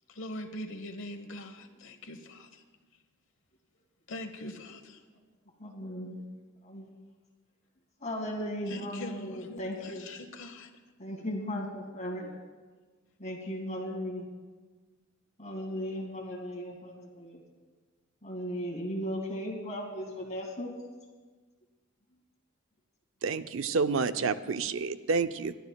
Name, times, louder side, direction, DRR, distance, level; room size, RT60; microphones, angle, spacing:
voice 1, 0.1-2.6 4.1-5.0 8.7-10.7, left 1 dB, 65° left, 7 dB, 1.1 m, -42 dB
voice 2, 5.6-6.3 6.6-6.9 8.0-10.1 11.0-12.3 13.2-14.3 15.4-17.4 18.2-20.7, equal, 35° left, 1 dB, 2.1 m, -36 dB
voice 3, 23.2-25.5, right 4 dB, 65° right, 11 dB, 0.5 m, -29 dB
27.5 x 12.0 x 2.3 m, 1.4 s
head